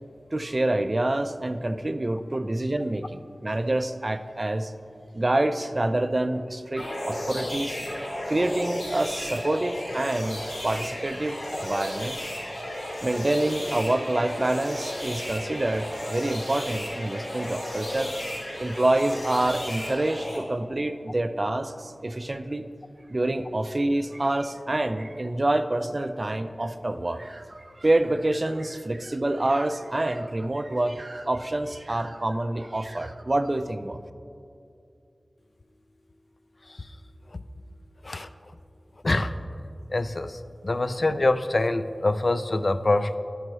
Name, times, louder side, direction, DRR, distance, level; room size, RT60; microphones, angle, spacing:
voice 1, 0.3-4.7 5.1-12.2 13.0-18.3 18.6-22.6 23.1-34.0, right 1 dB, 40° right, 9 dB, 0.3 m, -27 dB
sound 1, 6.8-20.4, equal, 80° left, 2.0 m, -34 dB
voice 2, 39.9-43.2, left 2 dB, 55° left, 10 dB, 0.3 m, -25 dB
12.0 x 5.4 x 3.1 m, 2.4 s
wide cardioid pair, 60°, 0 cm